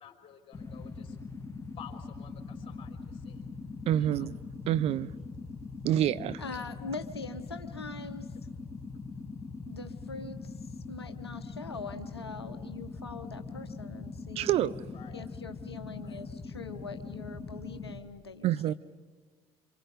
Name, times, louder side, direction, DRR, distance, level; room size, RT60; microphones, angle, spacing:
voice 1, 0.0-3.6 4.0-4.3 8.9-9.2 14.9-15.2 15.7-16.3, left 8 dB, 45° left, 4.1 m, -53 dB
sound 1, 0.5-18.0, left 4 dB, 20° left, 2.3 m, -42 dB
voice 2, 3.9-4.4 4.7-5.1 5.8-6.4 14.4-14.8 18.4-18.7, right 12 dB, 50° right, 0.6 m, -27 dB
voice 3, 6.4-8.3 9.7-10.5 10.9-14.7 15.1-18.7, left 4 dB, 90° left, 1.1 m, -43 dB
27.5 x 26.0 x 5.2 m
figure-of-eight pair, 55°, 13 cm